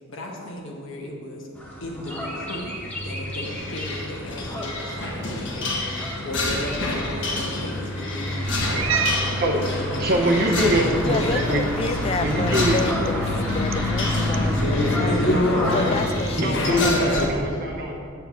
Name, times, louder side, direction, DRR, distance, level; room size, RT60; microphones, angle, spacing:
voice 1, 0.1-1.5 1.8-11.5 15.0-16.1, left 1 dB, 85° left, -1 dB, 1.1 m, -34 dB
sound 1, 1.5-16.1, left 1 dB, 10° left, 1.1 m, -29 dB
sound 2, 3.4-17.3, left 2 dB, 65° left, 1.3 m, -28 dB
Cat, 8.4-17.4, right 5 dB, 90° right, 0.5 m, -34 dB
voice 2, 10.0-11.7 12.2-12.8 16.4-17.9, right 1 dB, 50° right, -2 dB, 0.7 m, -24 dB
voice 3, 11.0-15.3 15.7-17.3, left 3 dB, 30° left, 9 dB, 0.4 m, -29 dB
7.2 x 4.6 x 7.0 m, 2.4 s
head